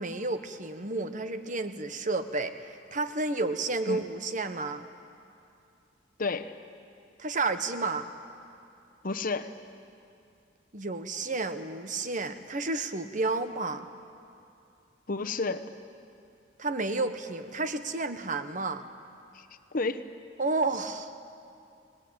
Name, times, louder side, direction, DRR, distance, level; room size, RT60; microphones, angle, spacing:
voice 1, 0.0-4.9 7.2-8.1 10.7-13.9 16.6-18.8 20.4-21.1, right 3 dB, 40° right, 9 dB, 1.2 m, -31 dB
voice 2, 6.2-6.5 9.0-9.5 15.1-15.7 19.3-19.5 19.7-20.0, left 3 dB, 45° left, 9 dB, 1.0 m, -31 dB
29.5 x 19.0 x 8.9 m, 2.5 s
head